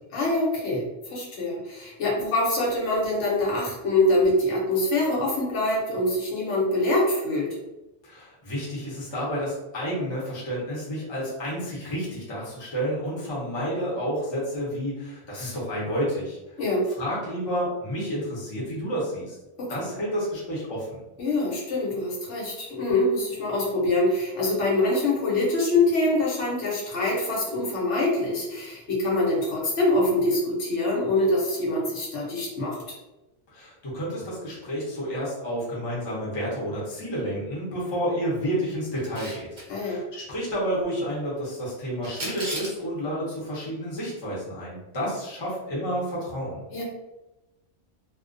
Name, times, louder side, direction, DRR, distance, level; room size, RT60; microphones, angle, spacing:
voice 1, 0.1-7.5 16.6-16.9 19.6-19.9 21.2-32.8 39.7-40.0 46.7-46.8, left 2 dB, 75° left, -4 dB, 1.1 m, -24 dB
voice 2, 8.0-16.4 17.0-19.4 19.7-21.0 33.5-39.5 39.8-46.6, equal, 25° left, -6 dB, 0.7 m, -30 dB
Camera, 39.0-39.6 42.0-42.8, right 1 dB, 35° right, 0.5 m, -34 dB
2.3 x 2.2 x 2.5 m, 1.0 s
omnidirectional pair, 1.2 m